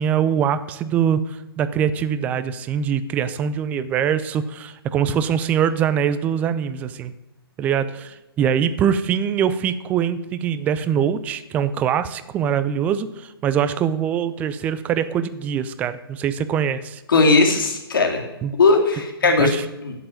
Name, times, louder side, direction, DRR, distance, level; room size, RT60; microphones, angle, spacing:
voice 1, 0.0-7.1 7.6-17.0 18.4-18.5 19.4-19.6, right 8 dB, 10° right, 13 dB, 0.4 m, -23 dB
voice 2, 17.1-18.2 18.6-19.5 19.8-19.9, left 3 dB, 55° left, 2 dB, 2.4 m, -17 dB
8.1 x 7.7 x 8.7 m, 0.99 s
figure-of-eight pair, 125°, 13 cm